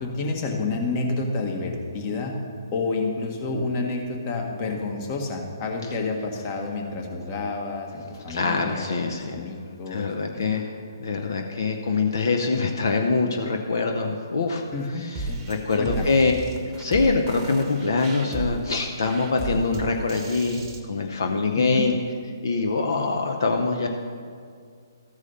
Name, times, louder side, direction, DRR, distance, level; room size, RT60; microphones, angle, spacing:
voice 1, 0.0-2.4 2.7-8.9 9.3-10.1 10.5-10.6 14.7-15.4 15.8-16.1 21.6-21.9, left 3 dB, 35° left, 1 dB, 1.4 m, -29 dB
voice 2, 8.3-9.5 9.9-16.3 16.6-22.0 22.4-23.9, left 4 dB, 70° left, 3 dB, 0.8 m, -24 dB
sound 1, 15.1-20.8, right 2 dB, 20° right, 0.9 m, -34 dB
14.0 x 4.9 x 5.5 m, 2.2 s
hypercardioid pair, 140°, 2 cm